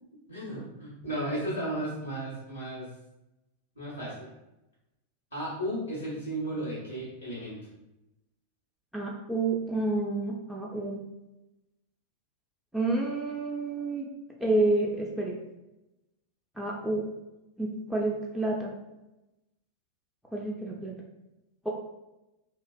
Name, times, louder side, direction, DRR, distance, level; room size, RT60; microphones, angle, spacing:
voice 1, 0.3-2.9 3.8-4.3 5.3-7.6, right 1 dB, 85° left, -7 dB, 0.9 m, -34 dB
voice 2, 8.9-11.0 12.7-14.1 14.4-15.3 16.6-17.1 17.6-18.7 20.3-21.0 21.6-21.7, right 2 dB, ahead, -4 dB, 0.3 m, -29 dB
2.4 x 2.2 x 2.4 m, 0.95 s
figure-of-eight pair, 90°, 0 cm